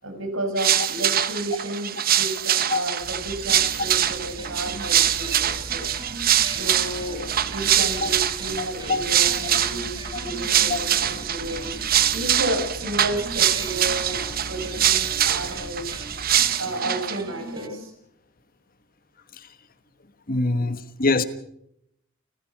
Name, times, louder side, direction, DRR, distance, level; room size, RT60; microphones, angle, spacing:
voice 1, 0.0-5.8 6.4-14.2 14.5-15.8 16.6-17.9 20.3-20.7, right 1 dB, 70° right, 5 dB, 6.0 m, -32 dB
sound 1, 0.6-17.2, right 11 dB, 40° right, 1.0 m, -24 dB
sound 2, 3.0-16.4, equal, 90° left, 6.3 m, -41 dB
sound 3, 3.5-17.7, right 1 dB, 20° right, 4.2 m, -42 dB
voice 2, 8.6-9.1 10.7-10.8 20.3-21.2, left 3 dB, 40° left, 11 dB, 1.3 m, -24 dB
29.5 x 15.0 x 5.9 m, 0.76 s
head